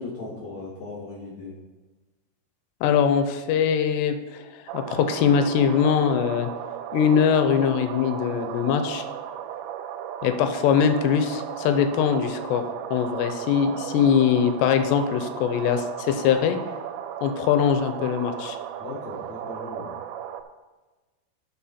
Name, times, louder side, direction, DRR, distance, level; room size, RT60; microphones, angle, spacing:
voice 1, 0.0-1.6 18.8-19.9, left 3 dB, 55° left, -7 dB, 2.3 m, -37 dB
voice 2, 2.8-4.5 4.7-6.5 6.9-9.0 10.2-12.6 12.9-16.6 17.2-18.6, left 8 dB, 85° left, 7 dB, 2.8 m, -22 dB
sound 1, 4.7-20.4, right 10 dB, 90° right, 2.8 m, -35 dB
11.5 x 6.3 x 4.3 m, 1.2 s
omnidirectional pair, 5.0 m